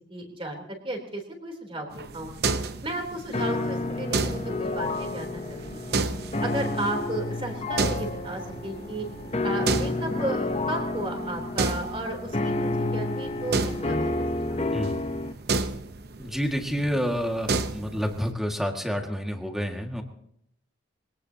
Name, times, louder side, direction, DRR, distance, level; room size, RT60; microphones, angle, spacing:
voice 1, 0.1-2.3 2.8-6.0 6.4-9.1 9.4-15.2, right 2 dB, 30° right, 2 dB, 3.6 m, -34 dB
sound 1, 1.9-18.3, right 3 dB, 55° right, 0.9 m, -33 dB
sound 2, 3.3-15.3, left 2 dB, 30° left, 0.8 m, -30 dB
voice 2, 16.2-20.0, equal, ahead, 3 dB, 2.0 m, -29 dB
24.0 x 18.0 x 2.9 m, 0.73 s
head